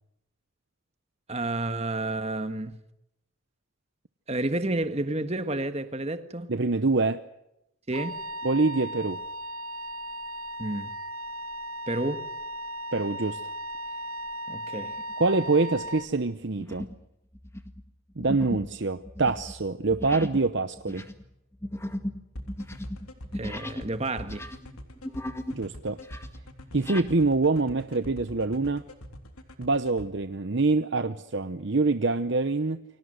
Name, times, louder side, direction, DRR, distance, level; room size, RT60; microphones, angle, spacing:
voice 1, 1.3-2.7 4.3-6.5 7.9-8.2 10.6-10.9 11.9-12.3 14.5-14.9 23.3-24.5, right 2 dB, 30° right, 1.6 m, -30 dB
voice 2, 6.5-7.2 8.4-9.2 12.9-13.4 15.2-16.9 18.2-21.1 25.5-26.0 26.7-28.8 29.6-32.8, right 3 dB, 55° right, 0.8 m, -25 dB
Wind instrument woodwind instrument, 7.9-16.1, equal, 80° right, 1.2 m, -37 dB
sound 1, 14.9-15.2 15.7-16.0 16.6-17.0 17.3-23.9 24.2-25.6 25.9-27.1, left 1 dB, 10° left, 1.8 m, -37 dB
sound 2, 22.4-30.1, equal, 90° left, 3.5 m, -43 dB
29.5 x 24.5 x 6.5 m
head